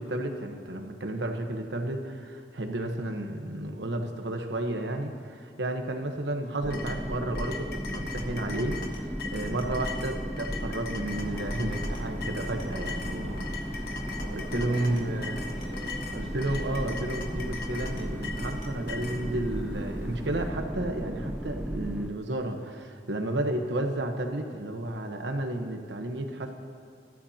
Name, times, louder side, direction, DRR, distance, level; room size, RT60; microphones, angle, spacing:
voice 1, 0.0-13.9 14.3-15.4 16.1-26.5, right 1 dB, 80° right, 4 dB, 1.1 m, -32 dB
sound 1, 6.6-22.1, equal, 5° right, 0.4 m, -35 dB
sound 2, 6.7-19.2, left 5 dB, 55° left, 1.2 m, -40 dB
sound 3, 11.1-20.5, left 1 dB, 90° left, 3.1 m, -49 dB
voice 2, 13.9-16.9, equal, 30° left, -7 dB, 2.3 m, -47 dB
21.0 x 13.5 x 2.9 m, 2.3 s
head